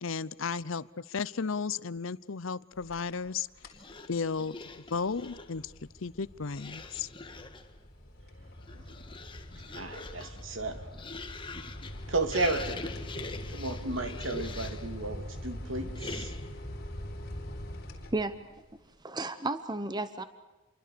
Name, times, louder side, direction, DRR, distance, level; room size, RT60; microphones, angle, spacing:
voice 1, 0.0-3.5 4.1-4.6 4.9-5.7 6.0-7.1, left 5 dB, 65° left, 0.7 m, -34 dB
sound 1, 2.7-3.3 3.6-3.9 4.4-18.6, equal, 50° left, 4.1 m, -43 dB
sound 2, 3.7-5.6 6.5-7.7 8.5-15.0 15.9-16.6, left 3 dB, 25° left, 1.7 m, -44 dB
voice 2, 9.7-10.9 12.1-12.8 13.5-16.3, right 2 dB, 65° right, 3.0 m, -33 dB
voice 3, 18.7-20.2, right 2 dB, 20° right, 1.0 m, -33 dB
28.0 x 23.5 x 6.9 m
head